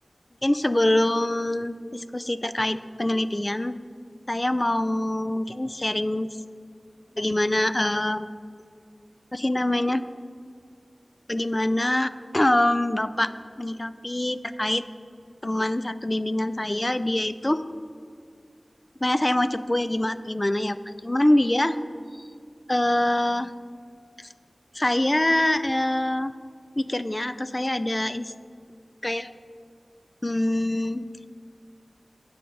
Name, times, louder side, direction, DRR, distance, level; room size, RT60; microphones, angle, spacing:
voice 1, 0.4-3.8 4.3-6.3 7.2-8.3 9.3-10.0 11.3-13.3 13.6-14.8 15.4-17.7 19.0-21.8 22.1-22.2 22.7-23.5 24.2-24.3 24.7-26.3 26.8-28.3 29.0-29.3 30.2-31.1, left 1 dB, 30° left, 13 dB, 0.4 m, -24 dB
10.5 x 6.4 x 5.3 m, 2.3 s
wide cardioid pair, 45°, 0 cm